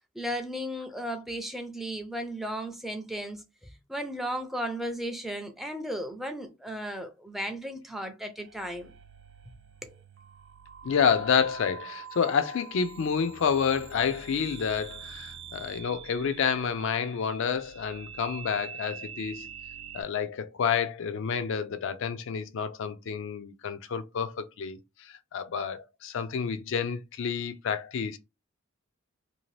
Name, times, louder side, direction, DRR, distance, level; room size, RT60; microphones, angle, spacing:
voice 1, 0.1-8.9 9.5-9.6 9.8-10.0, equal, ahead, 0.4 m, -35 dB
sound 1, 8.4-20.0, right 7 dB, 60° right, 0.4 m, -45 dB
voice 2, 10.8-19.5 19.9-24.8 25.3-28.2, left 6 dB, 65° left, 0.4 m, -29 dB
2.7 x 2.5 x 3.2 m
head